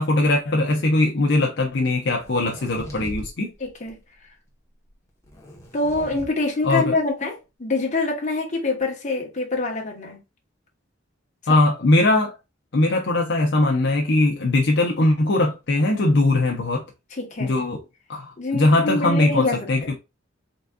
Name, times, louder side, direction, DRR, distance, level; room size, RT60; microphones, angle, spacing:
voice 1, 0.0-3.5 6.6-7.0 11.5-12.3 12.7-16.8 17.4-17.8 18.1-19.9, left 2 dB, 60° left, 0.7 m, -20 dB
sound 1, 2.2-3.3 3.6-4.0 5.2-6.3, equal, 15° left, 1.0 m, -39 dB
voice 2, 3.6-4.0 5.7-10.2 17.1-17.5 18.4-19.9, left 3 dB, 40° left, 1.1 m, -25 dB
3.9 x 3.6 x 2.3 m
head